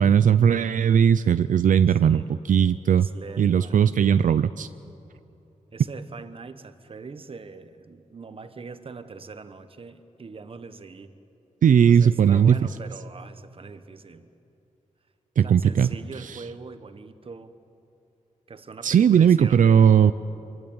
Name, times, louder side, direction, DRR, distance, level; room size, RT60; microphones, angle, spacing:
voice 1, 0.0-3.1 3.4-4.7 11.6-12.6 15.4-15.9 18.8-20.1, right 8 dB, 85° right, 13 dB, 0.5 m, -18 dB
voice 2, 2.9-3.8 5.7-11.1 11.9-14.3 15.4-17.5 18.5-19.9, right 4 dB, 45° right, 10 dB, 1.2 m, -42 dB
26.5 x 23.5 x 8.9 m, 2.8 s
wide cardioid pair, 150°, 13 cm